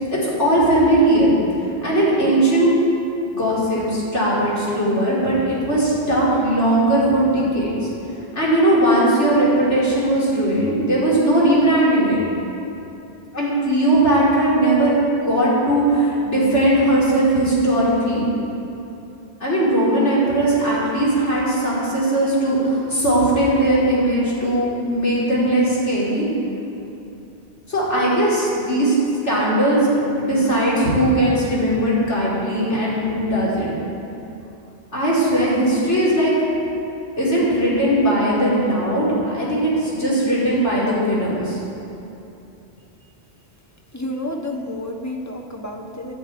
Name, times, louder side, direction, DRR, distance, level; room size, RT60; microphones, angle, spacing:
voice 1, 0.1-1.3 1.8-2.7 3.3-7.7 8.3-12.2 13.3-15.0 15.3-18.2 19.4-26.2 27.7-28.9 29.2-33.7 34.9-36.3 37.2-41.6, right 1 dB, 80° left, -8 dB, 5.1 m, -19 dB
voice 2, 43.9-46.1, left 1 dB, 15° left, 1 dB, 1.3 m, -30 dB
11.5 x 11.0 x 9.6 m, 2.8 s
omnidirectional pair, 1.2 m